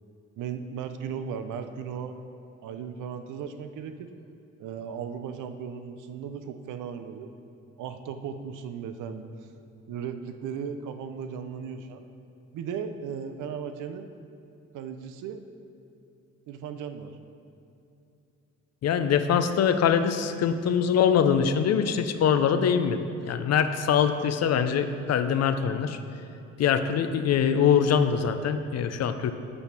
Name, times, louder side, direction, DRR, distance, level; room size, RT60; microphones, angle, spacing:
voice 1, 0.4-2.2 2.6-4.1 4.6-7.3 7.8-9.3 9.9-12.0 12.5-14.1 14.7-15.4 16.5-17.1, right 7 dB, 85° right, 8 dB, 0.6 m, -36 dB
voice 2, 18.8-26.0 26.6-29.3, left 7 dB, 60° left, 10 dB, 0.6 m, -23 dB
6.9 x 5.3 x 5.9 m, 2.7 s
cardioid pair, 90°, 30 cm